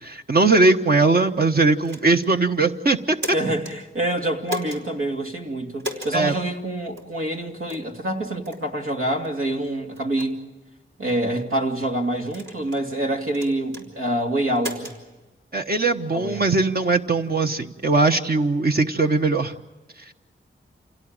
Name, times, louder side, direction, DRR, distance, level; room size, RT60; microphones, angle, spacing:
voice 1, 0.0-3.2 6.1-6.3 15.5-19.5 20.1-20.2, right 3 dB, 45° right, 4 dB, 1.2 m, -20 dB
sound 1, 1.8-2.3 3.0-3.7 4.5-4.8 5.8-6.2 7.0-7.1 7.7-7.9 8.4-8.6 9.2-9.4 9.9-10.3 11.1-11.5 12.3-12.9 13.3-13.8 14.6-15.0, equal, 65° right, 4.7 m, -35 dB
voice 2, 3.3-10.4 11.0-15.0 16.1-16.5, right 1 dB, 80° right, 2 dB, 2.9 m, -26 dB
28.0 x 17.5 x 8.9 m, 1.2 s
cardioid pair, 60°, 21 cm